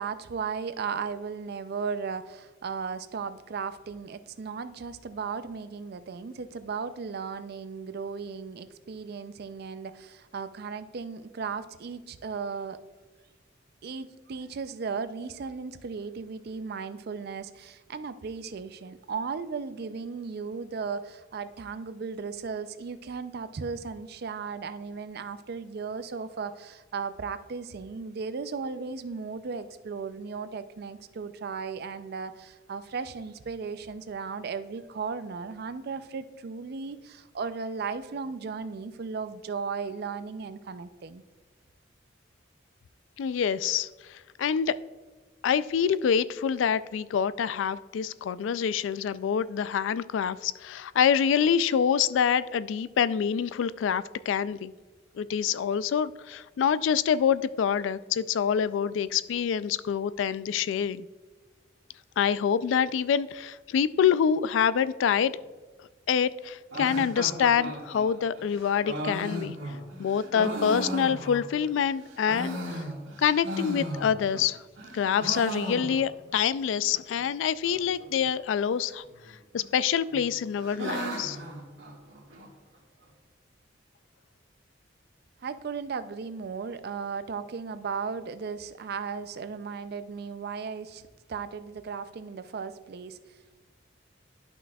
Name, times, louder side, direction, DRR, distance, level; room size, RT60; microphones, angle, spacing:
voice 1, 0.0-12.8 13.8-41.2 85.4-93.2, right 5 dB, 55° right, 12 dB, 0.4 m, -36 dB
voice 2, 43.2-44.7 45.4-54.7 55.2-61.1 62.2-65.4 66.1-69.6 70.0-72.8 73.2-74.6 74.9-79.0 79.5-81.4, left 7 dB, 75° left, 16 dB, 0.3 m, -26 dB
sound 1, 66.7-71.7 72.1-74.5 74.8-76.3 76.6-76.7 76.9-77.0 77.6-78.1 79.1-79.7 80.1-82.5, equal, 85° right, 1.7 m, -36 dB
11.5 x 6.0 x 2.3 m, 1.3 s
head